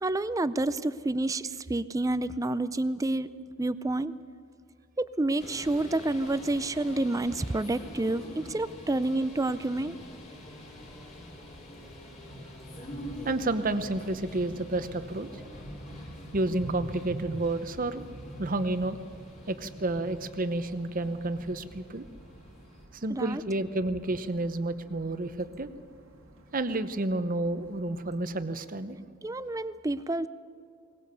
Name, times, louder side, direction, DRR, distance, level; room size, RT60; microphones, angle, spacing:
voice 1, 0.0-3.3 3.6-4.1 5.0-10.0 23.1-23.4 29.2-30.3, right 2 dB, 15° right, 15 dB, 0.5 m, -29 dB
sound 1, 5.4-22.8, left 1 dB, 30° left, 3.4 m, -47 dB
sound 2, 10.5-28.4, equal, 80° right, 2.0 m, -49 dB
voice 2, 13.2-15.3 16.3-18.0 18.4-19.0 19.5-22.1 22.9-25.7 26.5-29.0, right 2 dB, 40° right, 11 dB, 0.9 m, -30 dB
21.5 x 19.0 x 6.9 m, 2.4 s
head